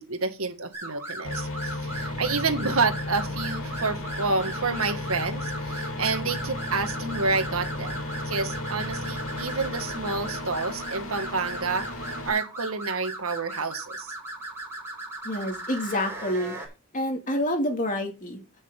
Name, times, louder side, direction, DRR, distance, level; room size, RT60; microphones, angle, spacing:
voice 1, 0.0-8.0 8.2-14.1, right 4 dB, 75° right, 1.7 m, -29 dB
sound 1, 0.7-16.7, right 2 dB, 10° right, 6.2 m, -38 dB
sound 2, 1.2-12.3, left 1 dB, 65° left, 3.2 m, -34 dB
voice 2, 15.2-16.6 16.9-18.4, left 1 dB, 35° left, 2.6 m, -28 dB
16.0 x 6.4 x 3.9 m
head